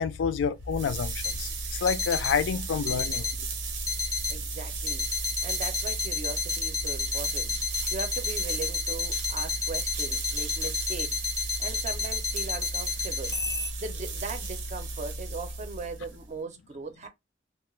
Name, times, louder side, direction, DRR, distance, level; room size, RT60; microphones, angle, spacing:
voice 1, 0.0-3.3, left 6 dB, 85° left, 0.3 m, -28 dB
sound 1, 0.5-16.3, right 3 dB, 85° right, 0.7 m, -35 dB
sound 2, 1.2-1.3 1.9-2.3 2.9-3.3 3.9-4.3 4.9-13.7, left 5 dB, 20° left, 0.5 m, -30 dB
voice 2, 4.3-11.2 11.6-13.4 13.8-17.1, right 3 dB, 40° right, 0.5 m, -39 dB
2.3 x 2.1 x 3.0 m
head